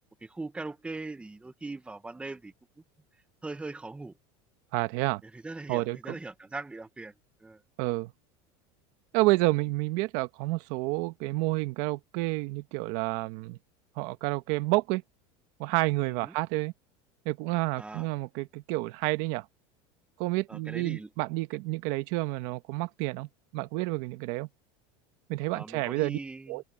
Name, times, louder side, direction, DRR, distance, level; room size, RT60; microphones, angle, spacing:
voice 1, 0.2-2.5 3.4-4.1 5.2-7.1 7.4-7.6 16.0-16.3 17.8-18.1 20.5-21.1 25.5-26.6, right 3 dB, 10° right, 1.2 m, -40 dB
voice 2, 4.7-5.2 5.7-6.2 7.8-8.1 9.1-13.6 14.0-15.0 15.6-16.7 17.2-19.4 20.2-24.5 25.3-26.2 26.5-26.6, right 21 dB, 65° right, 1.4 m, -29 dB
open air
supercardioid pair, 135°, 14 cm